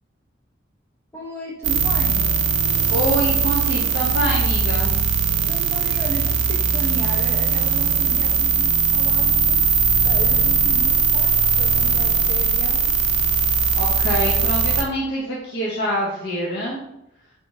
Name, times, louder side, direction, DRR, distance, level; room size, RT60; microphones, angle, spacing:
voice 1, 1.1-2.3 5.5-9.7 10.0-11.3 11.6-13.0, right 1 dB, 10° left, -3 dB, 0.4 m, -34 dB
sound 1, 1.6-14.8, right 5 dB, 60° right, 0.3 m, -19 dB
voice 2, 2.9-4.9 13.7-16.8, right 1 dB, 60° left, -5 dB, 0.6 m, -25 dB
3.3 x 2.9 x 2.6 m, 0.84 s
head